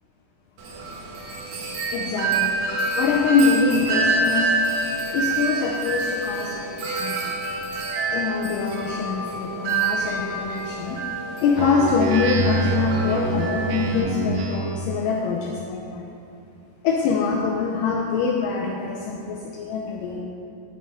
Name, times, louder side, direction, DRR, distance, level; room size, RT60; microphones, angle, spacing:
Wind chime, 0.6-14.0, right 3 dB, 65° right, 2.1 m, -27 dB
voice 1, 1.9-2.5 3.0-4.5 5.1-7.3 8.1-11.0 11.4-16.0 16.8-20.2, left 5 dB, 80° left, -1 dB, 2.1 m, -24 dB
Speech synthesizer, 11.5-14.9, right 3 dB, 80° right, 1.7 m, -26 dB
9.3 x 7.6 x 3.6 m, 2.7 s
omnidirectional pair, 4.1 m